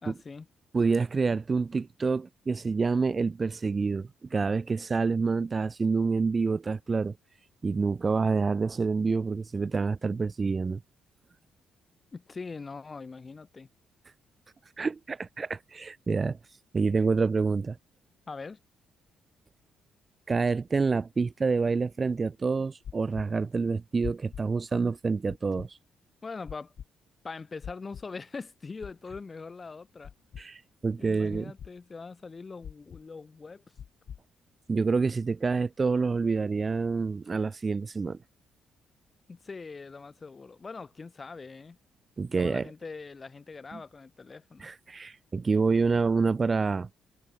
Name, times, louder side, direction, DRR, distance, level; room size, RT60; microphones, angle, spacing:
voice 1, 0.0-0.5 12.1-13.7 18.3-18.6 26.2-26.7 27.2-30.1 31.0-33.6 39.3-41.8 42.3-44.7, left 4 dB, 30° left, 4.4 m, -42 dB
voice 2, 0.7-7.1 7.6-10.8 14.8-16.4 16.7-17.8 20.3-25.8 30.4-31.5 34.7-38.2 42.2-42.7 43.7-43.8 44.6-46.9, right 4 dB, 30° right, 0.8 m, -27 dB
sound 1, 22.8-23.2 24.0-24.4 25.3-25.7 26.5-26.8 27.6-28.0 28.8-29.2 30.0-30.4 31.3-31.7 32.6-33.0 33.8-34.2, left 8 dB, 55° left, 1.6 m, -41 dB
cardioid pair, 90°, 0 cm